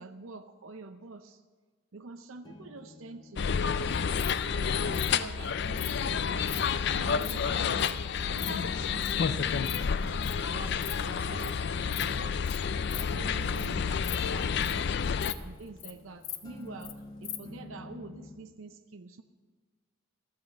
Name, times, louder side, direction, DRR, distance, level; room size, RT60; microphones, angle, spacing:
voice 1, 0.0-1.4 1.9-3.6 4.5-6.6 6.9-12.4 12.9-14.9 15.4-19.2, right 3 dB, 75° right, 8 dB, 0.6 m, -46 dB
sound 1, 2.4-18.4, left 2 dB, 20° left, 1.2 m, -50 dB
sound 2, 3.4-15.3, left 6 dB, 55° left, 0.4 m, -30 dB
Insect, 3.9-4.3 4.9-5.1 5.8-5.9 6.4-6.6 7.0-7.3 7.8-7.9 8.2-8.5 9.0-9.2 9.5-9.8 10.0-10.3 10.7-10.9 11.2-11.5 11.9-12.1 12.5-12.6 12.9-13.0 13.4-13.7 13.9-14.8 15.2-15.3 15.6-15.9 16.2-16.9 17.2-17.4, left 13 dB, 70° left, 1.0 m, -39 dB
13.5 x 9.5 x 7.1 m, 1.4 s
head